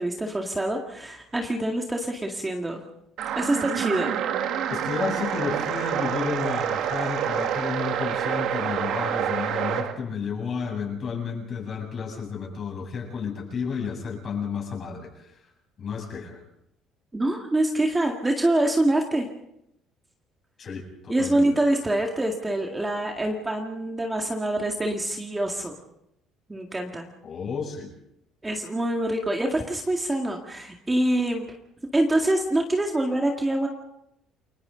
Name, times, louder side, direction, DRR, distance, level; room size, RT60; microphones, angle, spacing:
voice 1, 0.0-2.8 3.4-4.2 17.1-19.3 21.1-25.7 26.5-27.1 28.4-31.5 31.9-33.7, right 1 dB, 10° right, 2 dB, 2.0 m, -25 dB
sound 1, 3.2-9.9, right 9 dB, 65° right, 2.0 m, -27 dB
voice 2, 4.7-15.4 15.8-16.4 20.6-21.4 27.2-27.9, left 5 dB, 40° left, 0 dB, 7.5 m, -32 dB
30.0 x 22.5 x 3.9 m, 0.78 s
cardioid pair, 135°, 0 cm